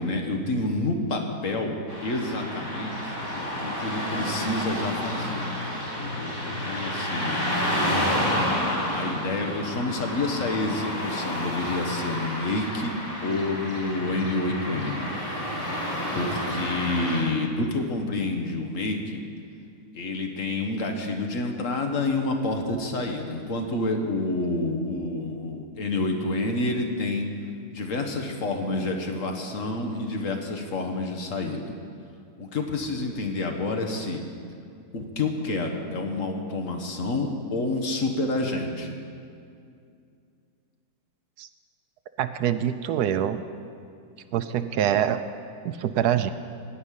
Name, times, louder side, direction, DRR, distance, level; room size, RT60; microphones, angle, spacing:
voice 1, 0.0-5.4 5.7-8.3 8.9-13.0 13.2-15.1 15.8-19.2 19.9-27.3 27.7-31.7 32.4-34.2 34.9-39.0, left 2 dB, 50° left, 3 dB, 1.5 m, -29 dB
Car passing by / Traffic noise roadway noise, 1.9-17.2, equal, 15° left, 3.7 m, -30 dB
voice 2, 42.2-43.4 44.3-45.2 45.6-46.3, right 10 dB, 75° right, 11 dB, 1.1 m, -25 dB
16.0 x 5.3 x 9.9 m, 2.4 s
omnidirectional pair, 1.8 m